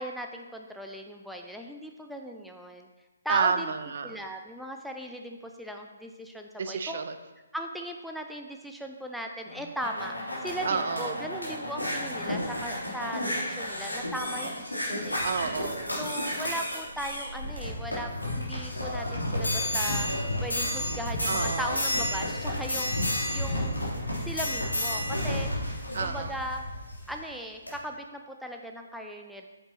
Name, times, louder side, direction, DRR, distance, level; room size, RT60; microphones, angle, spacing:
voice 1, 0.0-2.9 3.2-3.7 4.0-7.0 7.5-10.1 10.4-15.3 16.0-20.1 20.4-23.8 24.2-26.6 27.1-29.5, equal, ahead, 2 dB, 0.4 m, -38 dB
voice 2, 3.3-4.2 6.6-7.2 10.6-11.2 15.2-16.0 21.3-21.8 25.9-26.4, right 5 dB, 50° right, 9 dB, 0.6 m, -30 dB
sound 1, 9.4-27.1 27.7-27.8, left 1 dB, 80° left, 2.9 m, -31 dB
8.9 x 7.4 x 2.9 m, 1.1 s
figure-of-eight pair, 135°, 0 cm